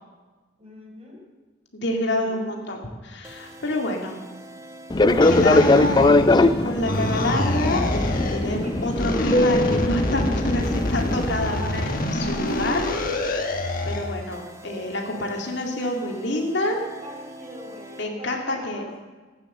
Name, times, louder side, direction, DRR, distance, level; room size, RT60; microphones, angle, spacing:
voice 1, 0.6-1.2 2.2-2.5 8.5-9.1 10.7-12.7 17.0-19.0, left 1 dB, 35° right, -1 dB, 4.2 m, -43 dB
voice 2, 1.7-4.2 5.0-12.9 13.3-16.8 18.0-18.8, left 1 dB, 65° left, 1 dB, 2.2 m, -28 dB
sound 1, 3.2-18.1, right 2 dB, 15° right, 1.0 m, -44 dB
Fixed-wing aircraft airplane, 4.9-11.3, left 2 dB, 20° left, 0.5 m, -21 dB
sound 2, 5.2-6.5 6.8-8.5 8.9-14.1, left 1 dB, 45° left, 1.3 m, -26 dB
15.0 x 9.1 x 7.1 m, 1.3 s
head